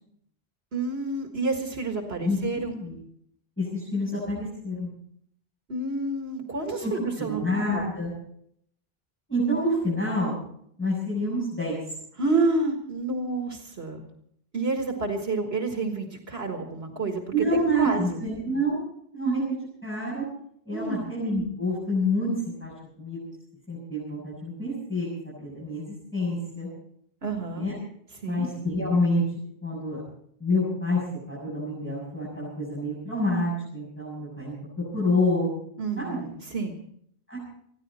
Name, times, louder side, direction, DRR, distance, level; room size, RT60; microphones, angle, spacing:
voice 1, 0.7-2.8 5.7-7.4 7.7-7.9 12.2-14.1 14.5-18.2 20.7-21.1 27.2-27.7 28.1-28.5 35.8-36.8, right 3 dB, 75° right, 3 dB, 1.9 m, -29 dB
voice 2, 2.2-2.9 3.6-4.9 6.6-6.9 7.2-8.1 9.3-10.4 10.8-11.8 17.3-18.8 19.1-19.6 19.8-20.2 20.6-22.3 22.6-22.7 23.0-23.3 23.7-26.7 27.5-27.7 28.2-29.2 29.6-30.0 30.4-31.0 31.3-35.5 36.0-36.3 37.3-37.4, left 1 dB, 10° left, -8 dB, 6.9 m, -27 dB
28.5 x 10.5 x 4.2 m, 0.69 s
omnidirectional pair, 1.1 m